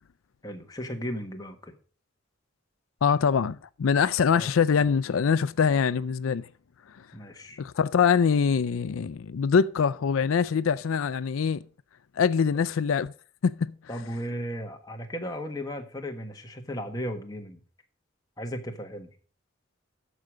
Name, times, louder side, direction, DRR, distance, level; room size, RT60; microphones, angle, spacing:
voice 1, 0.4-1.7 4.3-4.5 7.1-7.6 13.9-17.6 18.4-19.1, equal, 20° left, 1.3 m, -35 dB
voice 2, 3.0-6.5 7.6-11.6 12.2-13.1 13.4-13.7, left 6 dB, 85° left, 0.4 m, -24 dB
13.5 x 4.9 x 6.2 m
head